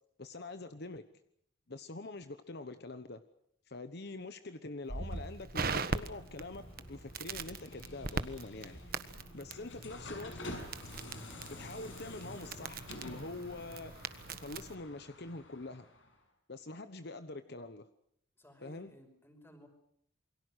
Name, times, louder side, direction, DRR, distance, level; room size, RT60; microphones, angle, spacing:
voice 1, 0.2-1.1 1.7-3.2 3.7-10.6 11.5-15.9 16.5-17.9 18.6-18.9, left 2 dB, 55° left, 10 dB, 1.1 m, -45 dB
Crackle, 4.9-14.7, right 4 dB, 45° right, 1.4 m, -41 dB
sound 1, 5.4-16.1, left 1 dB, 70° left, 6.6 m, -49 dB
voice 2, 18.4-19.7, equal, 10° left, 5 dB, 5.4 m, -58 dB
28.5 x 23.5 x 6.3 m, 0.70 s
head